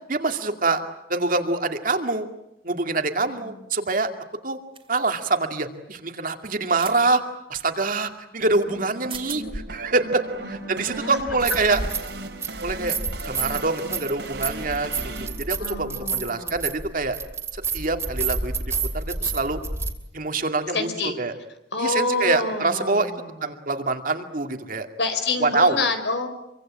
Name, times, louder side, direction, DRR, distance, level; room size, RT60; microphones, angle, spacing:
voice 1, 0.1-0.8 1.1-2.3 2.6-4.1 4.4-4.6 4.9-7.2 7.5-10.2 10.5-11.8 12.6-13.0 13.2-17.2 17.7-18.5 18.9-19.6 20.1-21.3 21.8-23.1 23.4-24.9 25.4-25.8, right 3 dB, 50° right, 6 dB, 2.4 m, -25 dB
voice 2, 3.2-3.9 10.4-11.2 15.6-16.5 20.7-21.1 21.7-23.5 25.0-26.3, left 3 dB, 85° left, 8 dB, 4.7 m, -28 dB
sound 1, 4.8-5.0 6.7-7.0 7.5-7.7 8.8-8.9 9.1-9.4, right 8 dB, 30° right, 2.5 m, -37 dB
sound 2, 8.4-15.3, right 2 dB, 80° right, 3.8 m, -37 dB
sound 3, 9.5-9.6 11.2-12.1 12.4-19.9, right 4 dB, 15° right, 2.9 m, -29 dB
26.5 x 24.5 x 8.9 m, 0.87 s
head